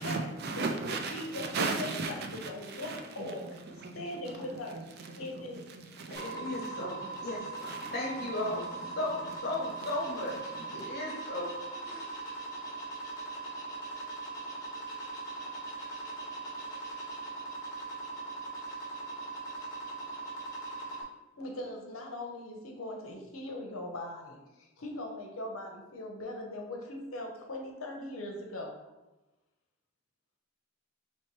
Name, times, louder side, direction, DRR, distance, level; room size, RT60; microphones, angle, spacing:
voice 1, 0.0-4.3 4.7-4.8 5.1-6.9 7.6-7.9 8.2-9.9 10.6-10.9, right 3 dB, 45° right, 0.4 m, -38 dB
voice 2, 1.1-2.2 2.5-3.4 3.9-4.8 5.2-5.6 21.4-28.9, left 1 dB, 70° left, 0.7 m, -40 dB
voice 3, 6.1-8.6 8.9-10.3 10.7-11.5 11.8-12.1, left 1 dB, 45° left, 1.0 m, -36 dB
sound 1, 6.1-21.0, right 3 dB, 20° left, 1.0 m, -40 dB
3.1 x 2.9 x 4.5 m
head